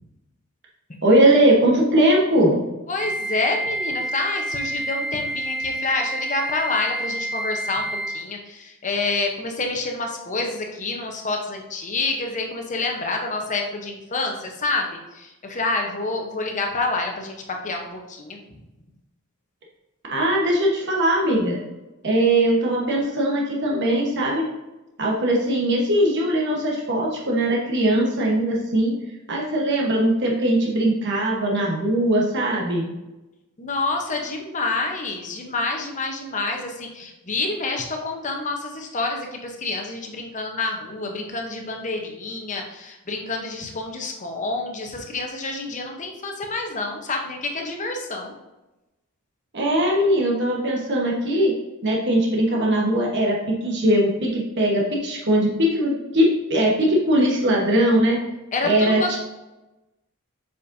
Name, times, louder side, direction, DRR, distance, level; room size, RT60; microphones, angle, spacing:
voice 1, 1.0-2.6 20.1-21.6 22.0-24.5 25.0-28.9 29.3-32.9 49.5-51.5 51.8-58.2 58.6-59.2, right 1 dB, 55° right, -2 dB, 1.3 m, -20 dB
voice 2, 2.9-18.4 33.6-48.3 58.5-59.2, left 3 dB, 35° left, 2 dB, 0.9 m, -28 dB
Wind instrument woodwind instrument, 3.0-8.3, right 1 dB, 20° right, 1.2 m, -29 dB
7.2 x 5.1 x 2.7 m, 1.0 s
head